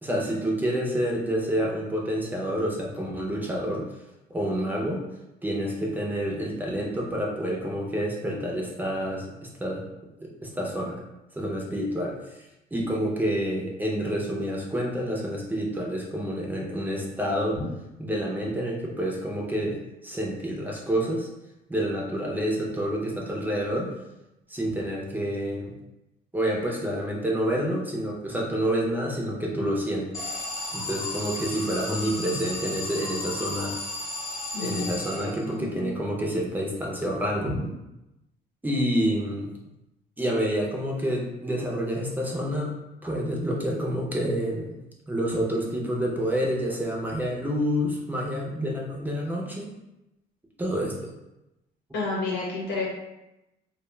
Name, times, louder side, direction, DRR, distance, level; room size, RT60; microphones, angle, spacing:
voice 1, 0.0-3.9 4.3-5.0 5.4-9.3 9.6-9.8 10.2-11.0 11.4-12.2 12.7-17.6 18.0-21.3 21.7-23.9 24.5-25.7 26.3-30.1 30.7-33.8 34.6-37.5 38.6-39.5 40.2-42.7 43.0-44.8 45.1-49.7 50.6-51.1, equal, 10° right, -2 dB, 0.5 m, -28 dB
Alarm, 30.1-35.7, left 2 dB, 20° left, 0.9 m, -34 dB
voice 2, 34.5-35.1 35.4-35.9 37.5-37.6 51.9-52.9, left 3 dB, 85° left, -4 dB, 0.9 m, -31 dB
2.3 x 2.2 x 3.1 m, 0.93 s
cardioid pair, 110°, 17 cm